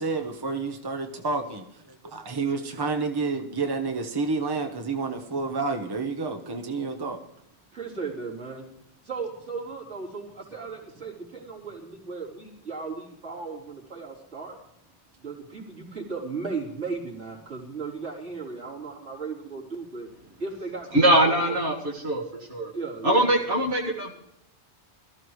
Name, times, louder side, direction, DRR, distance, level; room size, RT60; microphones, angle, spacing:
voice 1, 0.0-1.6 2.1-7.2, right 4 dB, 20° right, 4 dB, 1.0 m, -29 dB
voice 2, 7.7-8.7 9.0-14.6 15.2-20.1 20.4-21.6 22.7-23.3, right 4 dB, 85° right, -6 dB, 4.2 m, -36 dB
voice 3, 20.9-22.2 22.5-22.7 23.0-24.1, right 1 dB, 60° right, -2 dB, 2.3 m, -22 dB
21.5 x 14.0 x 3.2 m, 0.77 s
omnidirectional pair, 1.2 m